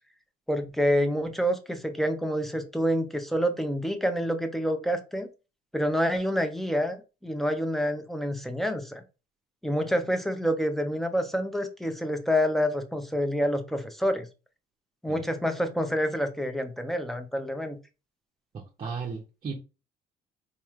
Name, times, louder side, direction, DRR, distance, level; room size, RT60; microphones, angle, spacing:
voice 1, 0.5-5.3 5.7-9.0 9.6-14.3 15.0-17.8, equal, ahead, 0.6 m, -27 dB
voice 2, 18.5-19.5, right 5 dB, 30° right, 0.7 m, -35 dB
4.3 x 2.9 x 2.4 m
cardioid pair, 110°, 17 cm